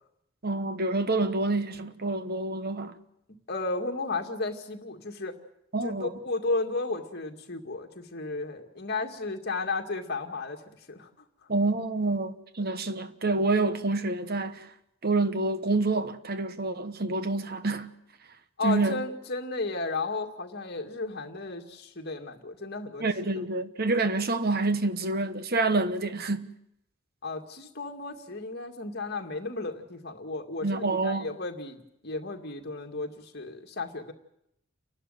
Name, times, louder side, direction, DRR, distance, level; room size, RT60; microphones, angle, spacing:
voice 1, 0.4-3.0 5.7-6.2 11.5-14.7 15.0-17.9 18.6-19.0 23.0-26.5 30.6-31.3, right 2 dB, 50° right, 1.2 m, -27 dB
voice 2, 3.5-5.4 5.8-10.6 10.9-11.1 18.6-23.0 27.2-34.1, left 3 dB, 50° left, 2.2 m, -34 dB
29.5 x 12.0 x 9.2 m
head